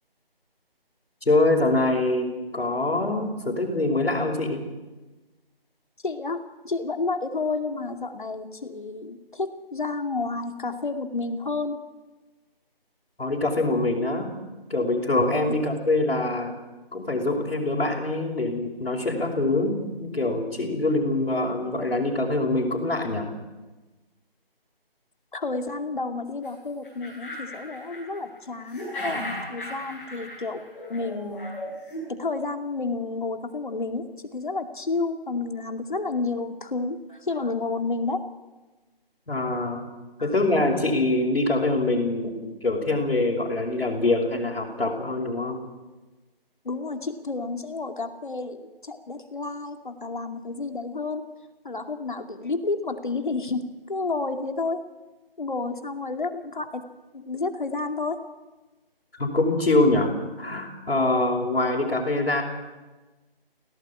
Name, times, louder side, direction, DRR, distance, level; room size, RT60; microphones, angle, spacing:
voice 1, 1.3-4.6 13.2-14.3 14.7-16.5 16.9-23.3 39.3-39.9 40.2-45.6 59.1-60.1 60.4-62.4, left 2 dB, 80° left, -3 dB, 5.2 m, -24 dB
voice 2, 6.0-11.8 25.3-30.6 30.9-31.5 32.1-34.0 34.3-38.2 40.2-40.3 46.6-51.2 51.6-54.8 55.4-56.8 57.1-58.2, left 3 dB, 55° left, 6 dB, 2.5 m, -30 dB
sound 1, 26.4-26.5 26.8-28.4 28.6-32.0, equal, 5° left, 5.8 m, -36 dB
22.5 x 17.5 x 8.5 m, 1.2 s
figure-of-eight pair, 175°, 30 cm